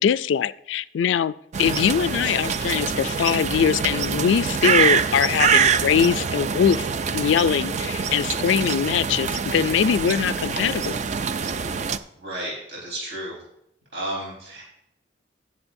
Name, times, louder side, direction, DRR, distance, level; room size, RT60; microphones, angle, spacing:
voice 1, 0.0-1.3 1.6-6.9 7.1-11.0, left 8 dB, 75° left, 17 dB, 0.3 m, -22 dB
sound 1, 1.5-12.0, right 6 dB, 40° right, 0.4 m, -24 dB
voice 2, 12.2-13.4 13.9-14.6, right 1 dB, 70° right, -4 dB, 4.3 m, -33 dB
18.5 x 7.4 x 2.6 m, 0.78 s
head